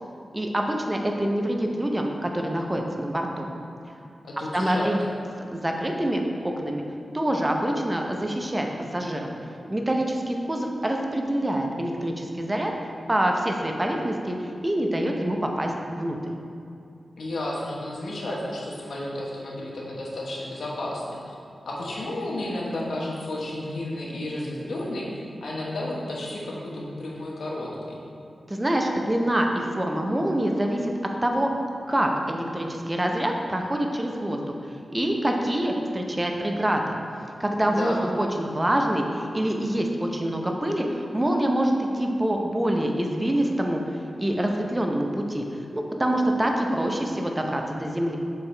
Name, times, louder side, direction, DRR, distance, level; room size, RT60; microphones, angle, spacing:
voice 1, 0.3-3.5 4.5-5.0 5.5-6.8 7.1-9.3 9.7-16.3 28.5-30.9 31.2-31.5 31.9-34.6 34.9-37.0 37.4-43.8 44.2-48.2, right 1 dB, 20° right, 2 dB, 0.6 m, -26 dB
voice 2, 4.2-4.9 17.2-21.3 21.7-25.1 25.4-28.0 37.7-38.0, left 1 dB, 90° left, -4 dB, 1.1 m, -32 dB
7.2 x 4.6 x 3.3 m, 2.4 s
wide cardioid pair, 95°, 0 cm